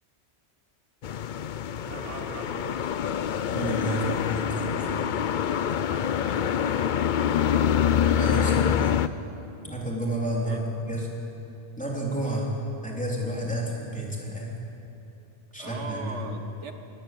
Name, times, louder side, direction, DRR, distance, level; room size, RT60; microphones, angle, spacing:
sound 1, 1.0-9.1, left 8 dB, 55° left, 0.6 m, -25 dB
voice 1, 1.8-2.8 5.9-7.2 10.4-10.6 15.6-16.7, right 4 dB, 90° right, 6 dB, 1.7 m, -40 dB
voice 2, 3.5-5.0 8.1-9.0 9.6-11.1 11.8-12.5 12.8-14.6 15.5-16.2, right 1 dB, 5° left, -3 dB, 3.4 m, -31 dB
20.5 x 17.5 x 7.7 m, 2.8 s
omnidirectional pair, 1.2 m